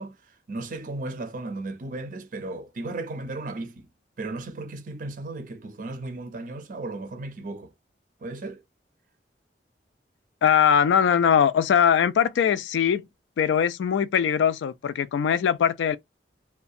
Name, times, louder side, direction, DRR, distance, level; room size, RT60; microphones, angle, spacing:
voice 1, 0.0-3.9 4.2-7.7 8.2-8.6, right 2 dB, 45° right, 0.4 m, -35 dB
voice 2, 10.4-13.0 13.4-16.0, left 8 dB, 90° left, 0.3 m, -21 dB
2.6 x 2.1 x 2.3 m
head